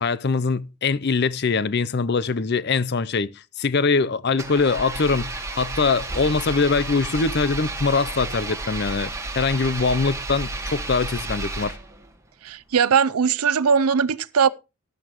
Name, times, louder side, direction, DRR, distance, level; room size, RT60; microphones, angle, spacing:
voice 1, 0.0-9.1 9.4-11.8, left 4 dB, 50° left, 0.6 m, -23 dB
Engine, 4.3-12.1, right 2 dB, 15° right, 1.6 m, -32 dB
voice 2, 12.4-14.5, right 6 dB, 85° right, 0.6 m, -20 dB
15.0 x 11.0 x 3.0 m
head